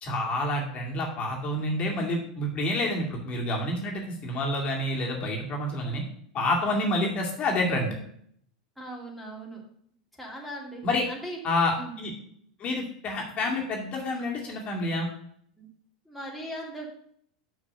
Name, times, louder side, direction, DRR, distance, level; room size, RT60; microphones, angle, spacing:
voice 1, 0.0-6.0 6.3-8.0 10.8-11.0 11.4-12.1 12.6-15.1, left 1 dB, 35° left, -1 dB, 2.2 m, -28 dB
voice 2, 8.8-9.6 10.2-11.4 11.7-11.9 15.6-15.7 16.1-16.9, right 1 dB, ahead, -3 dB, 2.3 m, -39 dB
6.2 x 6.0 x 6.6 m, 0.66 s
hypercardioid pair, 105°, 4 cm